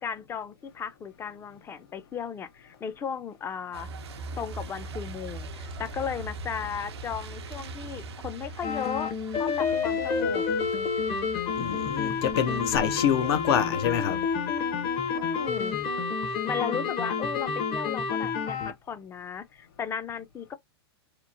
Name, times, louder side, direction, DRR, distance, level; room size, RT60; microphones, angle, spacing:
voice 1, 0.0-3.9 4.4-9.1 9.4-10.4 15.1-15.8 16.4-20.5, left 7 dB, 20° left, 0.4 m, -35 dB
Truck, 3.7-16.0, right 2 dB, 90° right, 0.5 m, -42 dB
sound 1, 8.6-18.7, left 5 dB, 35° left, 0.7 m, -29 dB
voice 2, 11.6-14.2, left 9 dB, 70° left, 0.6 m, -26 dB
2.9 x 2.1 x 2.5 m
hypercardioid pair, 125°, 13 cm